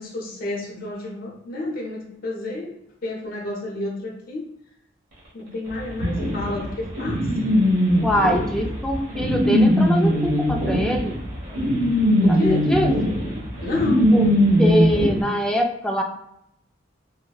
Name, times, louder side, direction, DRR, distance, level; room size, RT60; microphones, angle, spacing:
voice 1, 0.0-2.7 3.0-4.4 5.3-7.2 12.2-12.7 13.6-14.1, left 2 dB, 50° left, -3 dB, 0.7 m, -30 dB
sound 1, 6.0-15.1, equal, 60° right, 1.2 m, -20 dB
voice 2, 8.0-11.2 12.3-12.9 14.1-14.3 14.6-16.0, equal, 5° left, 2 dB, 0.3 m, -23 dB
3.7 x 2.1 x 2.3 m, 0.79 s
head